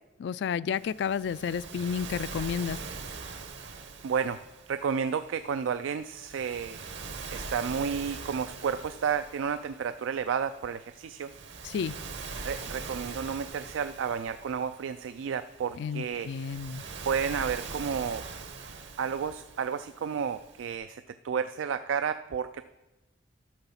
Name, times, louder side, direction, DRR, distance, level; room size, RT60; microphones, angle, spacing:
voice 1, 0.2-2.8 11.6-12.0 15.8-16.8, left 7 dB, 60° left, 19 dB, 0.3 m, -31 dB
Waves surf, 0.8-20.8, right 4 dB, 65° right, 1.0 m, -43 dB
voice 2, 4.0-4.4 4.7-6.9 7.3-11.3 12.4-16.3 17.1-18.2 19.0-22.6, right 7 dB, 85° right, 11 dB, 0.3 m, -31 dB
12.0 x 6.8 x 5.7 m, 1.0 s
head